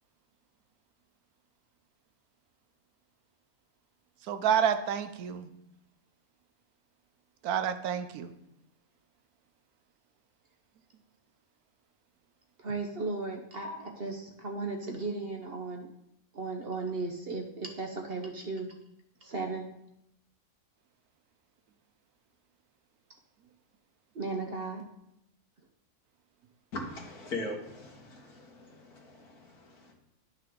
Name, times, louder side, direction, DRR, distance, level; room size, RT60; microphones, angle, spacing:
voice 1, 4.3-5.5 7.4-8.3, right 8 dB, 80° right, 10 dB, 1.2 m, -29 dB
voice 2, 12.6-15.9 16.3-18.7 19.2-19.7 24.1-24.8, right 3 dB, 45° right, 2 dB, 0.9 m, -36 dB
voice 3, 26.7-29.9, left 2 dB, 85° left, 0 dB, 2.0 m, -40 dB
11.0 x 5.7 x 3.7 m, 0.82 s
omnidirectional pair, 1.6 m